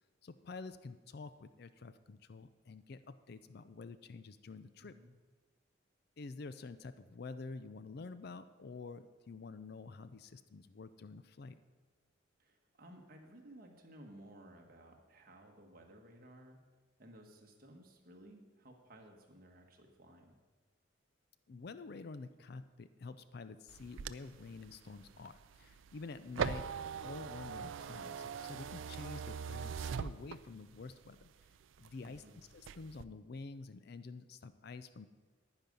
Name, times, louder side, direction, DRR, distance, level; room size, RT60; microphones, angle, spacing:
voice 1, 0.2-4.9 6.2-11.6 21.5-26.7 27.0-31.3 31.8-35.1, left 4 dB, 50° left, 13 dB, 0.4 m, -48 dB
voice 2, 4.8-5.1 12.4-16.6 17.0-20.4 32.0-32.4, right 1 dB, 45° right, 2 dB, 1.5 m, -57 dB
sound 1, 23.7-30.8 31.2-32.2 32.6-33.0, right 6 dB, 75° right, 0.4 m, -41 dB
10.0 x 9.7 x 5.3 m, 1.3 s
head